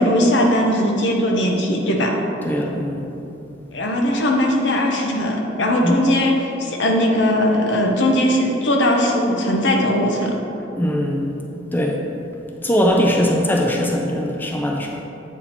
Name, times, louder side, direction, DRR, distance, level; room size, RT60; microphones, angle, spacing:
voice 1, 0.0-2.1 3.7-10.4, left 1 dB, 75° left, 1 dB, 0.8 m, -19 dB
voice 2, 2.4-3.0 5.8-6.0 10.8-11.4 11.7-12.0 12.6-14.9, equal, 10° left, 0 dB, 0.4 m, -20 dB
8.1 x 2.8 x 4.1 m, 2.8 s
head